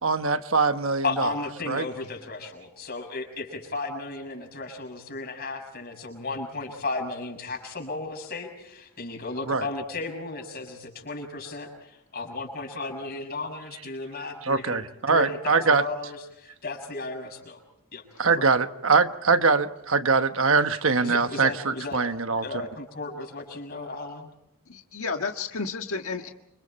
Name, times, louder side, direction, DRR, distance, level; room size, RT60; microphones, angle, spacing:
voice 1, 0.0-1.3 1.7-1.9 9.5-9.7 14.4-15.8 18.2-22.4, right 4 dB, 60° right, 1.2 m, -23 dB
voice 2, 1.0-17.6 17.9-18.0 18.3-18.5 21.0-22.0 22.4-24.3, left 3 dB, 45° left, 6.6 m, -34 dB
voice 3, 24.7-26.3, left 4 dB, 70° left, 1.6 m, -32 dB
28.5 x 26.0 x 4.4 m
head